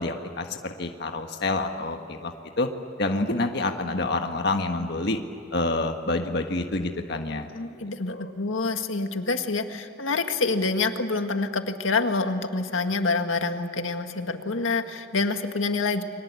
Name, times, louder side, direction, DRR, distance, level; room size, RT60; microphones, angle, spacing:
voice 1, 0.0-2.3 2.6-2.7 3.0-5.2 5.5-7.5 8.1-8.3, left 2 dB, 55° left, 4 dB, 1.6 m, -27 dB
voice 2, 7.5-16.0, left 3 dB, 85° left, 6 dB, 1.9 m, -27 dB
30.0 x 23.5 x 8.4 m, 2.5 s
head